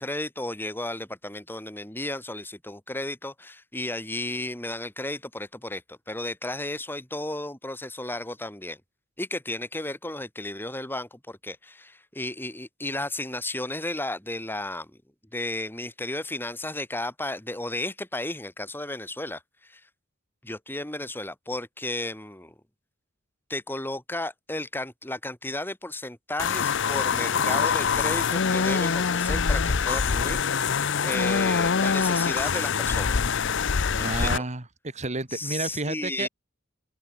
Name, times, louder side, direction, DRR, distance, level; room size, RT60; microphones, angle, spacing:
voice 1, 0.0-8.8 9.2-15.0 15.3-19.8 20.4-22.6 23.5-30.8 31.0-33.2 33.9-34.3 35.3-36.3, left 1 dB, 10° left, 3.4 m, -34 dB
sound 1, 26.4-34.4, left 6 dB, 60° left, 0.7 m, -24 dB
voice 2, 34.0-36.3, right 2 dB, 35° right, 1.9 m, -31 dB
open air
head